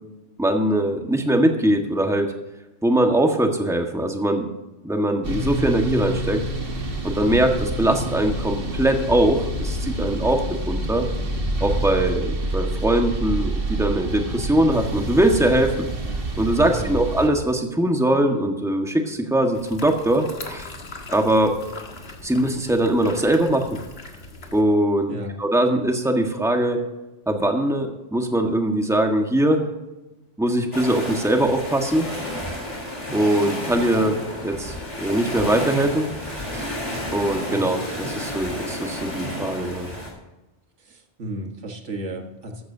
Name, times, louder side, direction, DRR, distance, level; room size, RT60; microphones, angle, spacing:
voice 1, 0.4-2.3 2.8-4.5 4.8-6.4 7.0-10.4 10.7-11.1 11.6-15.9 16.4-20.7 21.1-21.5 22.2-23.8 24.5-25.1 25.4-26.8 27.3-29.7 30.4-32.1 33.1-36.1 36.5-36.7 37.1-39.9, right 1 dB, 5° right, 3 dB, 1.5 m, -21 dB
sound 1, 5.2-17.3, right 1 dB, 50° right, 1.9 m, -27 dB
voice 2, 16.6-17.0 25.1-25.4 37.5-37.8 40.8-42.6, right 1 dB, 85° right, 3 dB, 2.0 m, -33 dB
sound 2, 19.5-24.6, left 2 dB, 60° left, 1.9 m, -39 dB
sound 3, 30.7-40.1, left 1 dB, 25° left, 3.9 m, -31 dB
14.0 x 14.0 x 2.8 m, 1.0 s
omnidirectional pair, 1.2 m